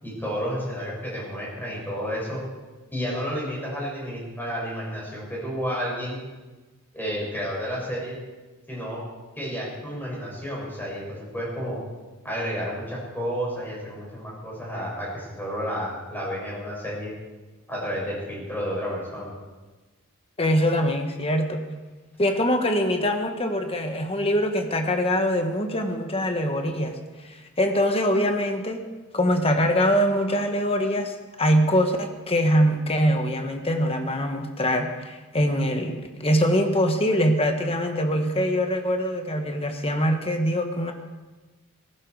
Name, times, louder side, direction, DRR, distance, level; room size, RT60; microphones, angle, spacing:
voice 1, 0.0-2.4 2.9-6.2 6.9-8.2 8.7-9.0 9.4-11.8 12.2-17.1 17.7-19.3, equal, 10° left, -4 dB, 7.0 m, -31 dB
voice 2, 20.4-21.6 22.2-27.0 27.2-28.8 29.1-31.1 31.4-40.9, equal, 25° left, 5 dB, 1.4 m, -23 dB
18.0 x 15.5 x 4.8 m, 1.2 s
head